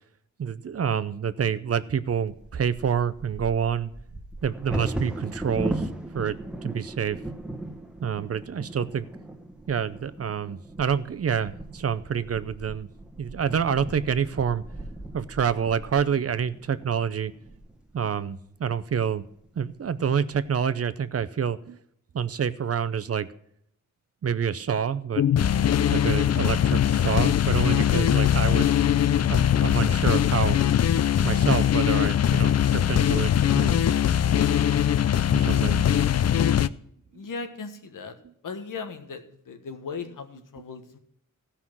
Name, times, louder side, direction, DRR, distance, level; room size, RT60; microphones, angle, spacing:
voice 1, 0.4-3.9 4.4-5.8 6.1-7.2 8.0-9.1 9.7-12.9 13.2-14.6 15.1-17.3 17.9-19.2 19.6-21.8 22.1-23.3 24.2-25.3 25.9-28.7 29.3-30.6 31.2-33.9 35.3-35.9 37.1-37.2, right 7 dB, 50° right, 14 dB, 0.6 m, -27 dB
Bird vocalization bird call bird song / Wind / Thunder, 2.3-18.2 18.8-18.9 19.2-19.6 20.1-20.6, right 1 dB, 5° right, 1.4 m, -37 dB
sound 1, 25.2-36.7, left 10 dB, 55° left, 0.4 m, -21 dB
voice 2, 37.1-38.1 38.4-41.0, left 4 dB, 90° left, 7 dB, 1.4 m, -37 dB
15.5 x 5.7 x 6.0 m, 0.68 s
wide cardioid pair, 150°, 31 cm